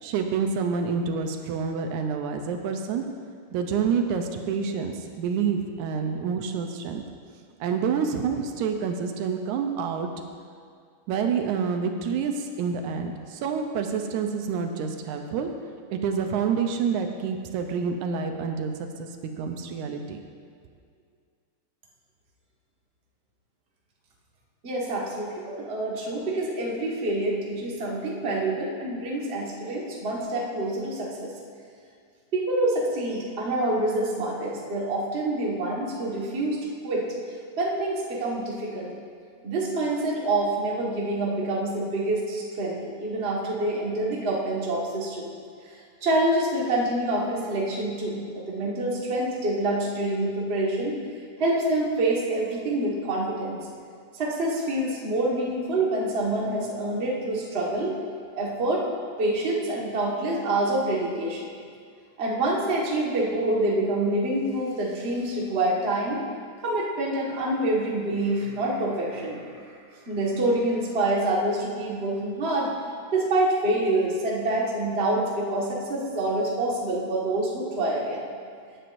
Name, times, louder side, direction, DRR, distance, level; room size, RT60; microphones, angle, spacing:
voice 1, 0.0-3.0 3.5-7.0 7.6-10.1 11.1-15.5 15.9-19.1 19.4-20.2, right 6 dB, 80° right, 5 dB, 2.1 m, -28 dB
voice 2, 24.6-31.3 32.3-37.1 37.6-38.9 39.4-45.3 45.7-51.0 51.4-53.6 54.1-57.9 58.3-58.9 59.2-61.4 62.2-66.2 66.6-69.5 70.0-72.7 73.1-78.2, right 1 dB, 30° right, -4 dB, 1.2 m, -26 dB
16.5 x 9.1 x 2.6 m, 2.2 s
omnidirectional pair, 3.4 m